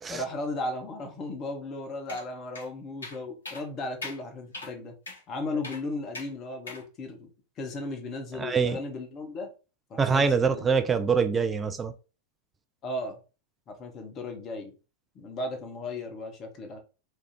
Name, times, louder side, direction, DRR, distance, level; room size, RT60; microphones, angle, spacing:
voice 1, 0.1-4.9 5.3-7.3 7.6-9.5 9.9-10.7 12.8-13.2 13.7-14.7 15.1-16.8, left 2 dB, 30° left, 1.1 m, -36 dB
sound 1, 2.1-2.3 2.6-2.7 3.0-3.2 3.5-3.6 4.0-4.2 4.5-4.7 5.1-5.2 5.6-5.8 6.1-6.3 6.7-6.8, left 2 dB, 75° left, 1.1 m, -39 dB
voice 2, 8.3-8.8 10.0-11.9, right 5 dB, 15° right, 0.4 m, -24 dB
3.4 x 2.4 x 4.3 m
figure-of-eight pair, 90°, 0 cm